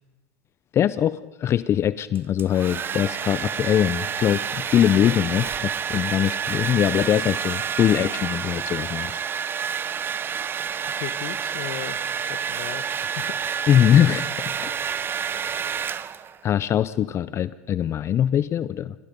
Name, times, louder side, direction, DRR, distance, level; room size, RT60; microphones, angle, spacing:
voice 1, 0.7-4.4 4.7-9.2 13.7-14.3 14.6-14.7 16.4-18.9, left 10 dB, 35° left, 17 dB, 0.6 m, -22 dB
Domestic sounds home sounds, 2.1-16.4, right 7 dB, 30° right, 0.9 m, -29 dB
voice 2, 10.9-13.3, left 14 dB, 60° left, 15 dB, 1.3 m, -36 dB
27.5 x 21.0 x 5.3 m, 1.1 s
hypercardioid pair, 100°, 8 cm